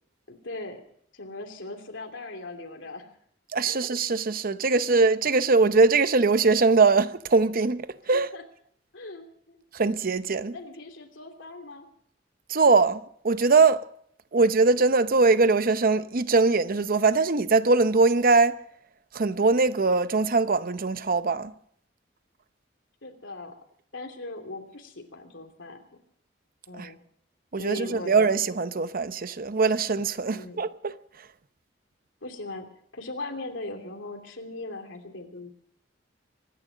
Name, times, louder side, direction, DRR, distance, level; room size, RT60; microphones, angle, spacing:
voice 1, 0.3-0.8 1.1-3.1 3.6-3.8 8.1-8.4 8.9-9.6 10.5-11.9 23.0-23.5 23.9-25.8 26.7-27.0 27.6-28.1 30.3-30.6 32.2-32.7 32.9-35.5, left 2 dB, 80° left, 2.9 m, -39 dB
voice 2, 3.5-8.3 9.7-10.5 12.5-13.9 14.3-18.6 19.1-21.5 26.7-26.9 27.5-30.9, right 3 dB, 50° right, 0.7 m, -22 dB
25.0 x 11.0 x 5.3 m
head